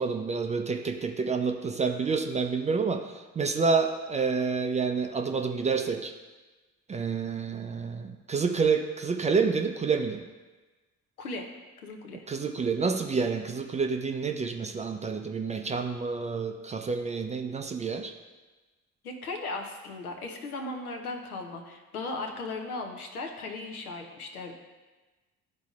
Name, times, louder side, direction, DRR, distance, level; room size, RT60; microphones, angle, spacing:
voice 1, 0.0-6.1 6.9-10.3 12.3-18.1, right 5 dB, 15° right, 5 dB, 0.4 m, -28 dB
voice 2, 11.2-11.5 11.8-12.2 19.0-24.5, left 3 dB, 85° left, 3 dB, 0.7 m, -37 dB
11.5 x 4.0 x 2.4 m, 1.2 s
figure-of-eight pair, 45°, 44 cm